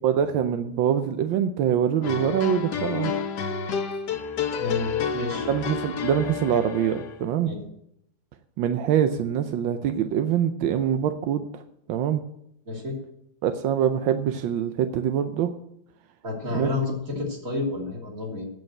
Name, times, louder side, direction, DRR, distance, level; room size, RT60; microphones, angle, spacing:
voice 1, 0.0-3.1 5.5-7.5 8.6-11.6 11.9-12.2 13.4-15.5 16.5-16.7, right 9 dB, 85° right, 8 dB, 1.4 m, -24 dB
sound 1, 2.0-7.2, left 6 dB, 65° left, 1.3 m, -29 dB
voice 2, 4.6-5.5 7.4-7.6 12.7-13.0 16.2-18.5, left 3 dB, 45° right, -1 dB, 3.4 m, -30 dB
9.1 x 7.9 x 7.8 m, 0.75 s
omnidirectional pair, 2.1 m